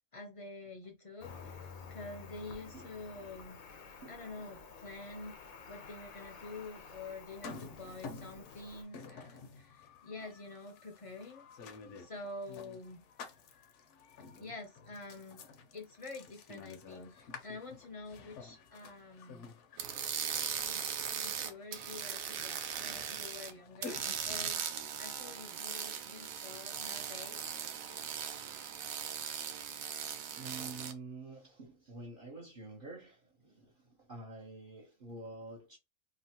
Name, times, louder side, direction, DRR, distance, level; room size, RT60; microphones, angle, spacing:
voice 1, 0.1-3.6 4.1-5.4 5.7-11.5 12.0-13.0 14.4-15.4 15.7-19.5 20.6-24.6 25.0-27.4, left 2 dB, 40° left, 0.5 m, -47 dB
Cricket, 1.2-8.8, left 5 dB, 90° left, 1.1 m, -51 dB
voice 2, 3.7-4.2 4.5-4.6 10.1-10.3 30.2-35.8, right 3 dB, 50° right, 0.7 m, -48 dB
sound 1, 7.3-24.6, left 4 dB, 65° left, 0.9 m, -51 dB
sound 2, 19.8-23.5 23.8-30.9, right 8 dB, 85° right, 1.0 m, -39 dB
2.9 x 2.4 x 2.8 m
omnidirectional pair, 1.4 m